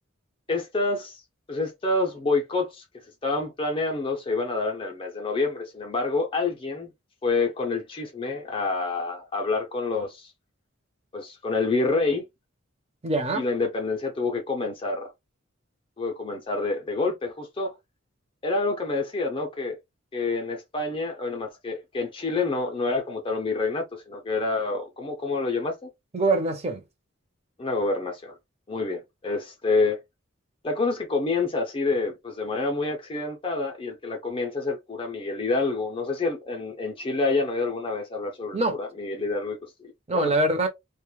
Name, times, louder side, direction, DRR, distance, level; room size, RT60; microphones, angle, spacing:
voice 1, 0.5-1.2 1.5-2.8 3.2-6.9 7.2-10.3 11.1-12.3 13.3-15.1 16.0-17.7 18.4-19.8 20.1-25.9 27.6-28.4 28.7-30.0 30.6-40.3, left 3 dB, 25° left, 0.4 m, -27 dB
voice 2, 13.0-13.4 26.1-26.8 38.5-38.7 40.1-40.7, right 2 dB, 30° right, 0.6 m, -23 dB
2.2 x 2.0 x 3.0 m
head